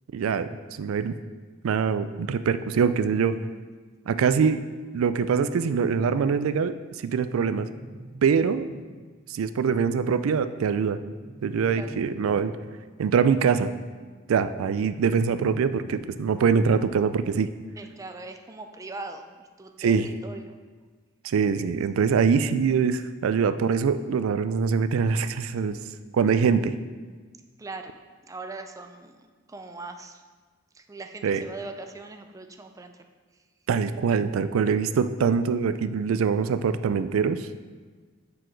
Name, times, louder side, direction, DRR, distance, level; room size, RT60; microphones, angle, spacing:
voice 1, 0.1-0.5 0.8-1.1 1.6-3.3 4.1-4.6 4.9-6.7 7.0-7.7 8.2-8.7 9.3-11.0 11.4-12.5 13.0-13.7 14.3-17.5 19.8-20.1 21.2-25.8 26.1-26.7 31.2-31.4 33.7-37.4, right 6 dB, 90° right, 12 dB, 0.4 m, -23 dB
sound 1, 7.1-9.1 10.8-12.7 14.5-16.5, right 1 dB, 70° right, 1.3 m, -46 dB
voice 2, 17.8-20.6 27.6-28.0 28.3-30.2 30.7-33.0, right 3 dB, 15° right, 6 dB, 0.4 m, -40 dB
6.2 x 4.8 x 4.5 m, 1.4 s
head